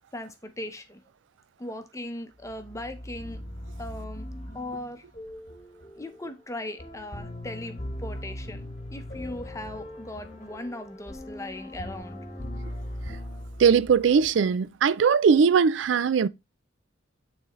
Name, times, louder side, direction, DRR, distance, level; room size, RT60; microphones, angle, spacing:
voice 1, 0.1-1.0 1.6-3.4 3.8-4.3 4.5-5.0 5.9-12.2, left 1 dB, 15° left, 0.8 m, -38 dB
sound 1, 2.4-14.5, left 1 dB, 35° left, 1.1 m, -39 dB
voice 2, 13.6-16.3, right 6 dB, 80° right, 0.4 m, -20 dB
8.9 x 4.0 x 3.1 m
head